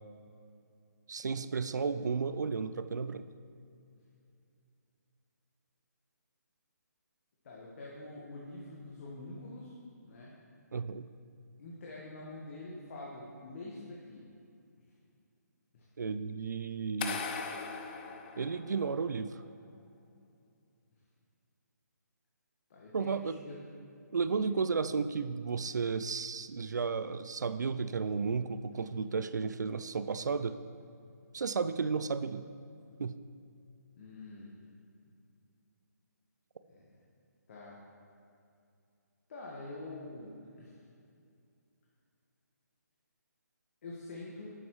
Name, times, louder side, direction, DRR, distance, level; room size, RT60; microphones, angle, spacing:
voice 1, 1.1-3.2 10.7-11.1 16.0-17.2 18.4-19.4 22.9-23.4 24.1-30.6 31.3-32.4 33.0-33.1, right 5 dB, 75° right, 12 dB, 0.4 m, -33 dB
voice 2, 7.4-9.8 10.0-10.3 11.6-14.3 15.7-15.9 22.7-23.6 24.4-24.6 28.7-28.8 33.9-34.5 36.7-36.8 37.5-37.8 39.3-40.3 40.6-40.8 43.8-44.5, left 2 dB, 45° left, -4 dB, 1.4 m, -46 dB
sound 1, 17.0-19.1, left 5 dB, 30° left, 0.5 m, -39 dB
11.0 x 8.0 x 3.2 m, 2.5 s
figure-of-eight pair, 150°, 10 cm